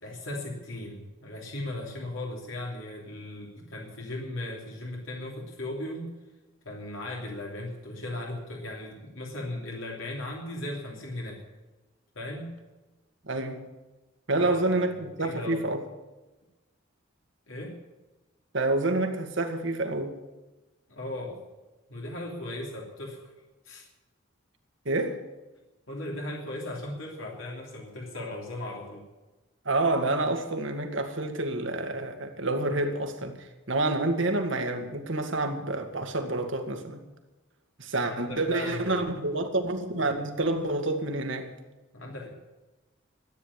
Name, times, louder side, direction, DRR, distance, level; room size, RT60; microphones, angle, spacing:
voice 1, 0.0-6.1 6.6-11.4 12.1-12.6 14.4-14.9 15.2-15.6 17.5-17.7 20.9-21.4 21.9-23.3 23.6-23.9 25.9-29.1 38.1-39.0 41.9-42.3, left 1 dB, 80° left, 3.0 m, -37 dB
voice 2, 13.3-13.6 14.3-15.8 18.5-20.2 24.9-25.2 29.7-37.0 37.8-41.5, right 2 dB, 70° right, 2.0 m, -28 dB
14.0 x 9.8 x 9.7 m
head